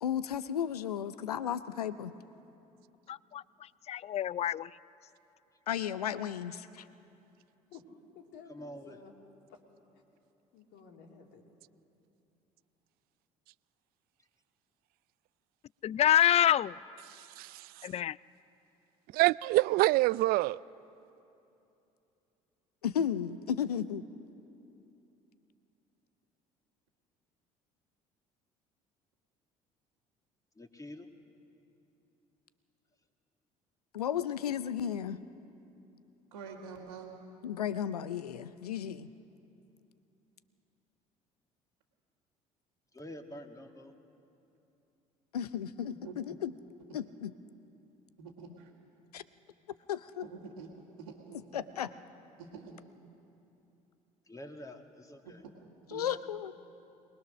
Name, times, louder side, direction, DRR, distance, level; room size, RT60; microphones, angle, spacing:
voice 1, 0.0-2.1 5.7-6.8 22.8-24.0 33.9-35.2 37.4-39.1 45.3-46.5 46.9-47.3 49.1-49.2 49.9-50.2 51.5-51.9 55.9-56.5, left 9 dB, 85° left, 0.5 m, -34 dB
voice 2, 3.1-3.4 3.9-4.7 15.8-16.8 17.8-18.2, left 11 dB, 35° left, 0.4 m, -26 dB
voice 3, 7.7-9.1 9.5-9.6 10.5-11.4, left 5 dB, 60° left, 2.7 m, -53 dB
voice 4, 8.5-9.0 30.6-31.1 42.9-43.9 54.3-55.5, left 1 dB, 15° left, 2.0 m, -47 dB
voice 5, 17.1-17.9 19.1-20.6, right 20 dB, 55° right, 0.4 m, -27 dB
voice 6, 36.3-37.1 45.9-46.3 48.2-48.7 50.2-50.7 51.0-51.4 52.4-52.8 55.2-55.4 55.9-56.1, right 5 dB, 80° right, 2.2 m, -47 dB
23.0 x 20.5 x 6.3 m
hypercardioid pair, 60°, 19 cm